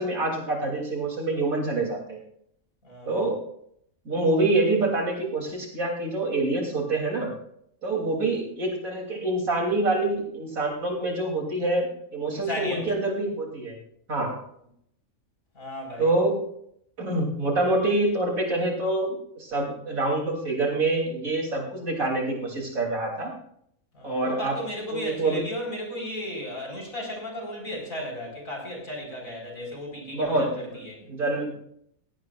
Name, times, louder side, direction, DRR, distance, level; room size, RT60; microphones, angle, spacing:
voice 1, 0.0-2.2 3.1-3.4 4.1-7.3 7.8-13.8 14.1-14.4 16.0-16.4 17.0-23.3 24.0-24.6 24.9-25.4 30.1-31.5, right 2 dB, 70° right, -1 dB, 3.7 m, -26 dB
voice 2, 2.8-3.3 12.3-12.9 15.6-16.1 23.9-31.0, left 1 dB, 70° left, 0 dB, 5.3 m, -35 dB
18.0 x 16.5 x 2.5 m, 0.70 s
omnidirectional pair, 1.5 m